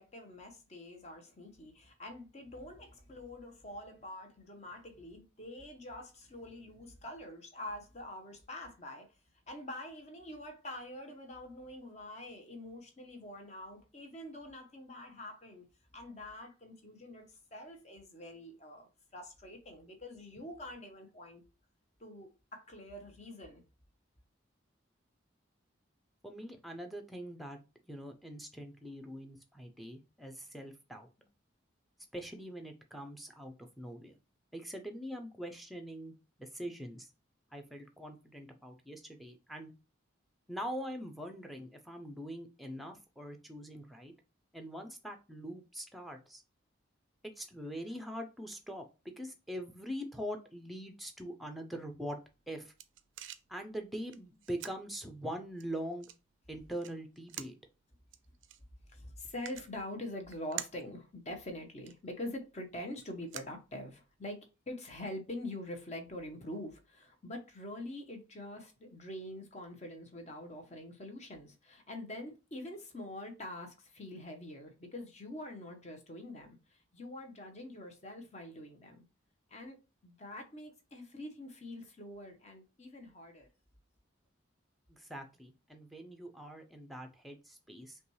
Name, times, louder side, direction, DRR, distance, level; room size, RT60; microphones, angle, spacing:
voice 1, 0.0-9.1 9.5-15.7 15.9-21.4 22.0-23.6 58.9-64.4 64.7-79.0 79.5-79.8 80.0-83.5, left 1 dB, 35° left, 0.8 m, -45 dB
voice 2, 26.2-27.6 27.9-31.3 32.1-34.2 34.5-36.1 36.4-37.1 37.5-39.7 40.5-44.1 44.5-46.4 47.4-52.2 52.5-52.7 53.5-56.1 56.5-57.6 84.9-88.0, equal, ahead, 0.5 m, -43 dB
sound 1, 52.2-64.3, right 12 dB, 70° right, 0.4 m, -51 dB
5.5 x 2.3 x 3.1 m
head